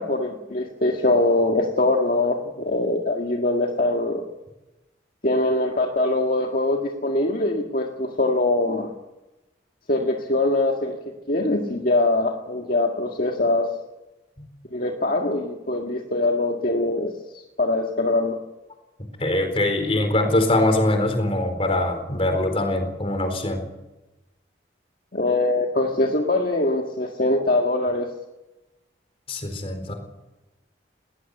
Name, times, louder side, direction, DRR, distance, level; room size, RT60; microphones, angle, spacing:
voice 1, 0.0-4.2 5.2-8.9 9.9-11.0 11.3-13.7 14.7-18.4 25.1-28.1, left 2 dB, 50° left, 2 dB, 1.9 m, -23 dB
voice 2, 19.2-23.6 29.3-29.9, left 1 dB, 30° left, 5 dB, 4.2 m, -22 dB
20.0 x 19.0 x 8.3 m, 1.0 s
head